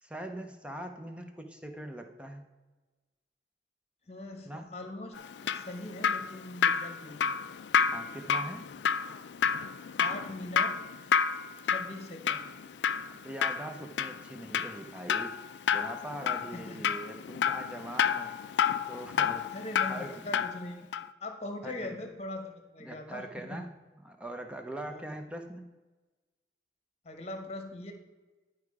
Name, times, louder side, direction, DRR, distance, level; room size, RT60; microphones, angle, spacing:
voice 1, 0.0-2.4 4.5-4.7 7.9-8.7 13.1-15.4 15.7-18.3 18.9-19.5 19.9-20.5 21.6-22.0 22.8-23.7 24.0-25.6, right 1 dB, 5° right, 5 dB, 0.7 m, -42 dB
voice 2, 4.1-7.3 9.9-10.7 11.6-12.4 16.5-16.8 19.5-20.9 21.2-23.6 24.9-25.1 27.0-27.9, left 1 dB, 35° left, 5 dB, 1.1 m, -41 dB
Drip, 5.2-20.6 20.9-21.1, left 7 dB, 80° left, 0.4 m, -30 dB
10.5 x 4.8 x 4.7 m, 1.2 s
head